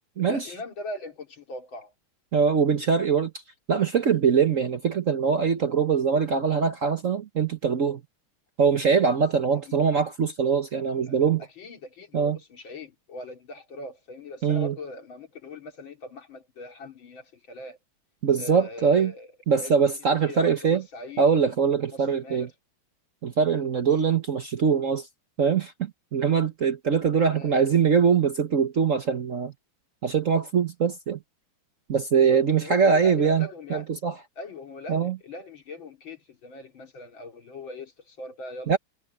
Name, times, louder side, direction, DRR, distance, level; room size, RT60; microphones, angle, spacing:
voice 1, 0.2-1.9 9.6-9.8 11.1-11.2 11.6-17.8 18.4-19.3 19.6-19.9 20.2-21.5 21.9-22.5 23.5-23.7 27.2-27.5 32.3-33.9 34.4-38.8, left 2 dB, 65° left, 3.7 m, -40 dB
voice 2, 2.3-3.3 3.7-8.0 8.6-11.4 12.1-12.4 14.4-14.7 18.2-19.1 19.5-20.8 21.2-22.5 23.2-25.1 25.4-29.5 30.0-31.2 31.9-34.1 34.9-35.2 38.7-38.8, right 6 dB, 50° right, 1.1 m, -23 dB
omnidirectional pair, 2.3 m